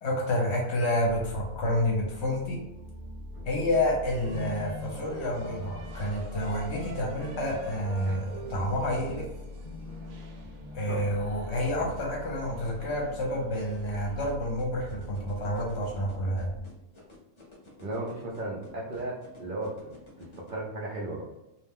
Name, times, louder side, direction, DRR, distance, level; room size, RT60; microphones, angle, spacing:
voice 1, 0.0-2.6 3.5-9.3 10.7-16.5, left 1 dB, 60° left, -2 dB, 0.8 m, -29 dB
sound 1, 1.0-16.6, left 1 dB, 85° left, 0.4 m, -44 dB
sound 2, 4.1-14.3, right 1 dB, 85° right, 1.1 m, -44 dB
sound 3, 14.3-20.5, left 2 dB, 30° left, 0.6 m, -51 dB
voice 2, 17.8-19.9 20.2-21.2, right 2 dB, 65° right, -5 dB, 0.5 m, -35 dB
2.6 x 2.1 x 3.4 m, 0.93 s
omnidirectional pair, 1.5 m